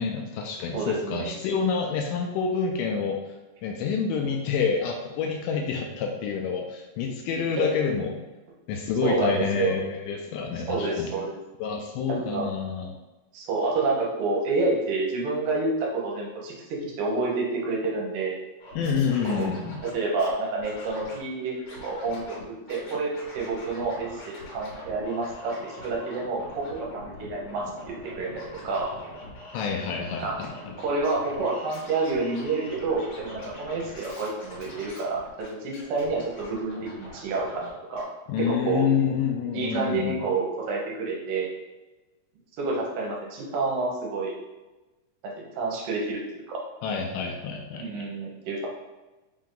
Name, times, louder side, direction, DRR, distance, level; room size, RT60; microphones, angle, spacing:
voice 1, 0.0-3.3 3.6-8.2 8.7-11.1 11.6-12.9 18.8-19.8 29.5-30.8 38.3-40.2 46.8-47.8, left 6 dB, 80° left, 2 dB, 2.0 m, -28 dB
voice 2, 0.7-1.3 7.6-7.7 9.0-9.7 10.7-11.4 12.2-12.5 13.3-18.4 19.2-19.5 19.8-21.6 21.8-28.9 30.2-30.4 30.8-38.0 38.4-38.9 39.5-41.5 42.6-44.3 45.2-46.2 46.5-46.6 47.8-48.7, right 3 dB, 75° right, -2 dB, 2.5 m, -29 dB
Scratching (performance technique), 18.6-20.3 20.6-21.2 21.6-22.4 22.7-37.7 37.9-38.0, left 1 dB, 60° left, 2.4 m, -44 dB
5.5 x 2.6 x 3.7 m, 1.1 s
omnidirectional pair, 4.0 m